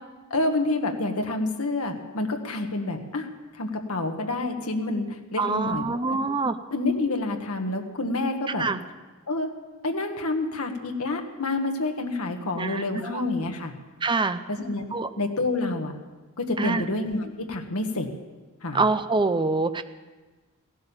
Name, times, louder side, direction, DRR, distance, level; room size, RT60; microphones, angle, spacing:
voice 1, 0.3-3.3 3.5-6.2 6.7-8.6 9.3-9.5 9.8-13.7 14.5-15.9 16.4-18.1 18.6-18.8, left 2 dB, 75° left, 4 dB, 1.5 m, -28 dB
voice 2, 5.4-6.6 8.6-8.8 12.6-13.2 14.0-14.4 14.9-15.1 16.6-16.8 18.7-19.8, right 3 dB, 20° right, 10 dB, 0.5 m, -25 dB
16.0 x 12.0 x 7.0 m, 1.2 s
head